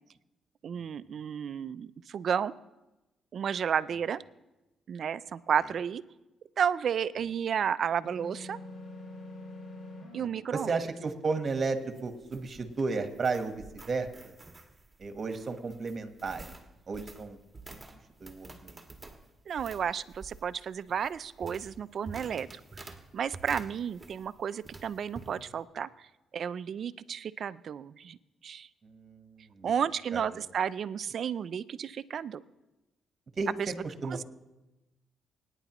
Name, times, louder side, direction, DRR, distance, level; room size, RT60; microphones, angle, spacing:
voice 1, 0.6-2.5 3.3-4.2 4.9-6.0 6.6-8.6 10.1-10.7 19.5-22.8 23.1-26.1 26.3-28.2 28.4-28.7 29.6-32.4 33.6-33.7 34.1-34.2, right 8 dB, 55° right, 16 dB, 0.4 m, -32 dB
sound 1, 8.0-10.3, left 1 dB, 60° left, 5.3 m, -44 dB
voice 2, 10.2-14.1 15.0-16.5 16.9-17.4 17.7-17.8 18.2-18.8 28.8-29.7 30.1-30.4 33.3-34.2, right 4 dB, 40° right, 7 dB, 1.3 m, -34 dB
sound 2, 11.7-24.4 24.6-25.3, right 3 dB, 20° right, 1.6 m, -49 dB
24.0 x 9.8 x 3.1 m, 1.0 s
cardioid pair, 90°, 0 cm